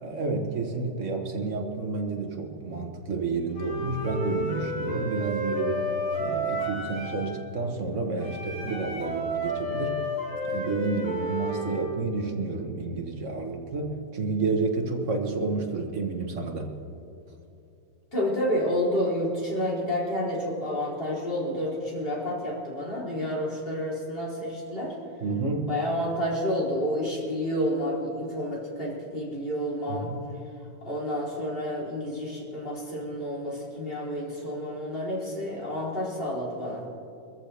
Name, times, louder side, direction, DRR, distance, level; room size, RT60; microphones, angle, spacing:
voice 1, 0.0-5.8 6.2-10.0 10.4-16.7 25.2-25.7 29.9-30.2, right 4 dB, 45° right, 3 dB, 1.6 m, -30 dB
Wind instrument woodwind instrument, 3.5-7.3 8.2-11.8, equal, 45° left, 5.3 m, -31 dB
voice 2, 18.1-24.9 25.7-30.1 30.8-36.8, equal, 30° left, -5 dB, 3.9 m, -30 dB
24.0 x 14.0 x 3.4 m, 2.6 s
omnidirectional pair, 2.0 m